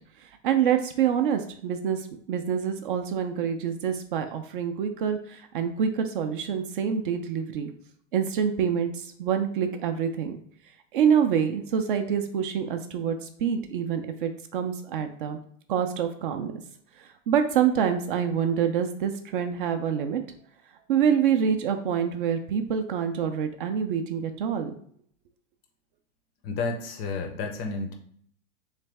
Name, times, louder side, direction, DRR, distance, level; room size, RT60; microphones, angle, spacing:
voice 1, 0.2-7.7 8.1-10.4 10.9-15.4 15.7-16.5 17.0-20.2 20.9-24.7, right 8 dB, 45° right, 7 dB, 0.5 m, -26 dB
voice 2, 26.4-27.9, left 4 dB, 25° left, 4 dB, 0.5 m, -31 dB
3.3 x 3.2 x 3.3 m, 0.63 s
hypercardioid pair, 115°, 39 cm